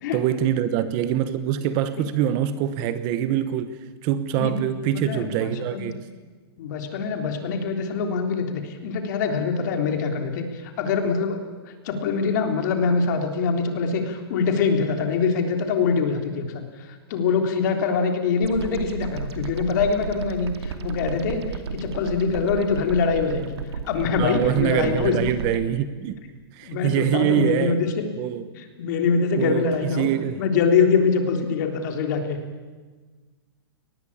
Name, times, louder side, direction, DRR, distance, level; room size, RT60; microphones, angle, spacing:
voice 1, 0.1-6.1 24.2-26.2 26.5-27.8 28.1-28.5 29.3-30.4, right 10 dB, 30° right, 13 dB, 1.0 m, -24 dB
voice 2, 4.9-5.9 6.6-11.4 11.8-23.6 23.8-25.3 26.6-27.9 28.6-30.1 30.4-32.4, left 5 dB, 45° left, 5 dB, 3.6 m, -24 dB
sound 1, 18.4-25.5, right 6 dB, 75° right, 2.6 m, -33 dB
23.5 x 19.5 x 8.7 m, 1.4 s
hypercardioid pair, 160°, 14 cm